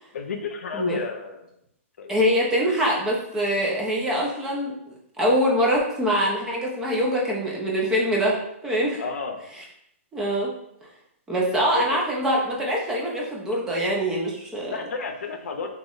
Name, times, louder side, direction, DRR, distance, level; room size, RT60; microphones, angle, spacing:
voice 1, 0.1-1.5 2.0-2.1 9.0-9.4 11.7-12.0 14.7-15.7, left 4 dB, 85° left, 4 dB, 0.5 m, -31 dB
voice 2, 2.1-8.4 8.6-9.0 10.1-10.5 11.3-14.7, equal, 10° right, -3 dB, 0.4 m, -24 dB
2.9 x 2.0 x 3.8 m, 0.75 s
hypercardioid pair, 160°, 8 cm